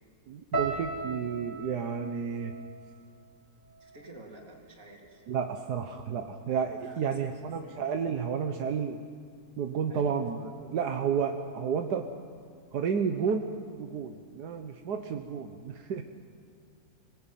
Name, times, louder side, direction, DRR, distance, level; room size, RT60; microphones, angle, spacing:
voice 1, 0.3-2.6 5.3-9.0 9.6-12.0 12.7-13.4 13.7-16.0, right 6 dB, 85° right, 5 dB, 1.6 m, -31 dB
sound 1, 0.5-4.7 5.0-5.8 6.4-6.6, right 3 dB, 10° right, 3.7 m, -39 dB
voice 2, 3.8-5.2 6.8-7.8 9.9-10.2, right 2 dB, 55° right, 0 dB, 3.8 m, -50 dB
27.0 x 19.5 x 9.1 m, 2.3 s
omnidirectional pair, 1.7 m